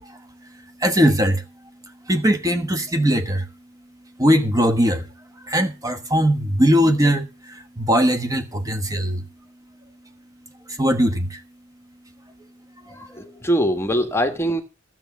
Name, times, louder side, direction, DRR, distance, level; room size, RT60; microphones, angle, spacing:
voice 1, 0.0-1.4 2.0-3.5 4.2-5.1 5.4-9.3 10.7-11.4 12.8-13.2, equal, 15° right, 1.2 m, -20 dB
voice 2, 12.9-14.6, equal, 15° left, 1.4 m, -22 dB
13.5 x 7.5 x 6.9 m
head